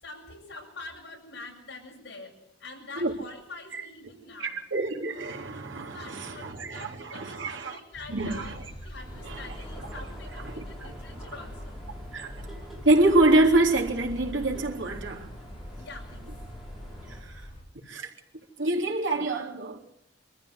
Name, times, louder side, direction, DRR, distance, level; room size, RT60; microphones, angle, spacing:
voice 1, 0.0-2.3 2.6-4.5 5.8-8.5 8.8-11.8 15.8-16.3, left 3 dB, 65° left, 7.6 m, -45 dB
voice 2, 4.4-7.8 8.1-8.7 9.2-9.5 10.4-11.3 12.1-15.3 17.1-17.5 17.9-18.1 18.6-19.8, right 2 dB, 85° right, 3.6 m, -26 dB
sound 1, 7.9-17.6, left 1 dB, 25° left, 5.3 m, -43 dB
sound 2, 8.9-17.2, equal, ahead, 5.5 m, -48 dB
24.5 x 14.0 x 8.2 m
head